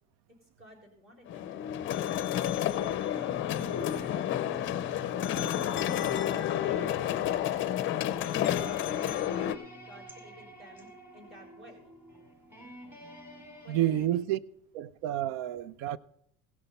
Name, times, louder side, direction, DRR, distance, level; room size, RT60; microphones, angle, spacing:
voice 1, 0.4-1.7 3.9-5.1 6.2-7.0 7.3-11.8 13.6-14.3, left 1 dB, 35° right, 4.0 m, -53 dB
sound 1, 1.3-9.6, left 11 dB, 35° left, 0.6 m, -30 dB
sound 2, 3.1-14.1, right 1 dB, 5° right, 2.5 m, -49 dB
voice 2, 13.7-14.4 14.7-16.0, right 12 dB, 60° right, 0.5 m, -29 dB
17.0 x 6.1 x 5.4 m
cardioid pair, 145°, 36 cm